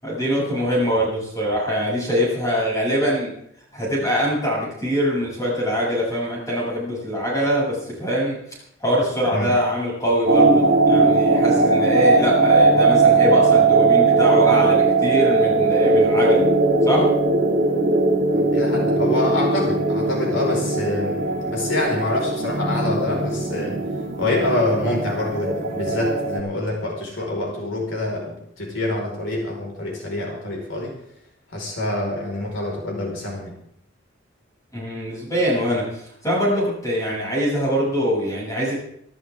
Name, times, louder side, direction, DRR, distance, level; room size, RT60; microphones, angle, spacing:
voice 1, 0.0-3.3 3.7-8.4 8.8-16.5 16.8-17.1 34.7-38.8, equal, 15° left, -5 dB, 7.7 m, -23 dB
sound 1, 10.3-26.4, right 3 dB, 65° right, 2.5 m, -19 dB
voice 2, 18.3-23.8 24.2-30.9 31.5-33.6, left 1 dB, 70° left, -1 dB, 5.1 m, -26 dB
25.0 x 13.0 x 3.7 m, 0.70 s
head